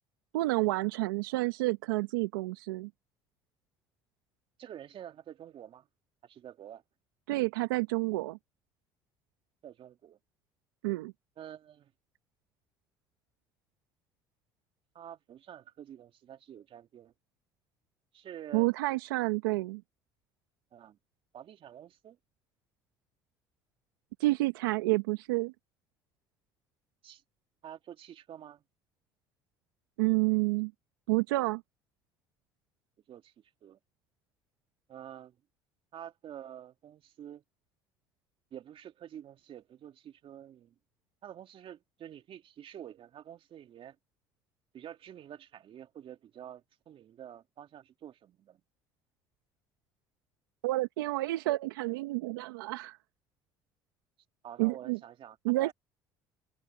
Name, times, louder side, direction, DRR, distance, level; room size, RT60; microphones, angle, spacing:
voice 1, 0.3-2.9 7.3-8.4 10.8-11.1 18.5-19.8 24.2-25.5 30.0-30.7 31.1-31.6 50.6-53.0 54.6-55.0 55.4-55.7, right 21 dB, 85° right, 1.1 m, -29 dB
voice 2, 4.6-5.9 6.2-6.8 9.6-10.2 11.4-11.9 14.9-17.1 18.1-18.7 20.7-21.0 21.3-22.2 27.0-27.2 27.6-28.6 33.1-33.3 33.6-33.8 34.9-35.4 35.9-37.4 38.5-40.7 41.2-44.0 44.7-48.6 54.4-55.7, right 10 dB, 55° right, 2.5 m, -48 dB
hypercardioid pair, 70°, 11 cm